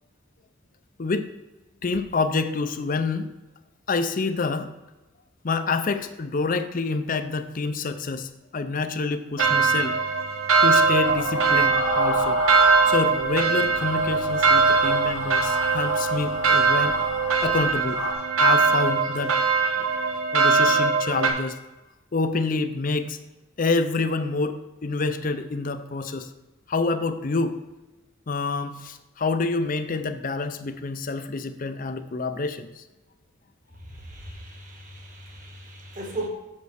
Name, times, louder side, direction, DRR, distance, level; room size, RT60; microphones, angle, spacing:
voice 1, 1.0-1.3 1.8-3.3 3.9-4.7 5.4-9.9 10.6-12.4 12.9-17.0 17.4-18.0 18.4-19.3 20.3-21.5 22.1-23.2 23.6-26.3 26.7-27.6 28.3-32.8, left 3 dB, 40° left, 10 dB, 0.5 m, -27 dB
sound 1, 9.4-21.3, right 4 dB, 90° right, 1.1 m, -21 dB
sound 2, 11.0-13.3 13.6-18.1, left 2 dB, 85° left, 1.9 m, -32 dB
voice 2, 33.9-36.3, right 2 dB, 40° right, 1 dB, 1.6 m, -37 dB
6.6 x 5.3 x 6.4 m, 1.1 s
head